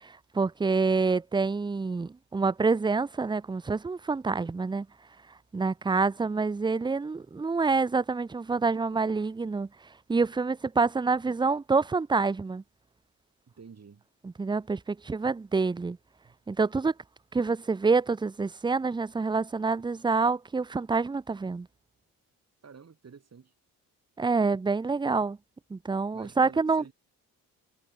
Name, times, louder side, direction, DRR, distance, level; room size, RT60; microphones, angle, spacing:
voice 1, 0.0-4.9 5.5-9.7 10.1-12.6 14.2-16.0 16.5-16.9 17.3-21.7 24.2-25.4 25.7-26.9, right 4 dB, 10° right, 0.5 m, -27 dB
voice 2, 13.6-14.1 16.2-16.3 22.6-23.5 26.1-26.9, right 6 dB, 40° right, 6.5 m, -50 dB
supercardioid pair, 65°, 38 cm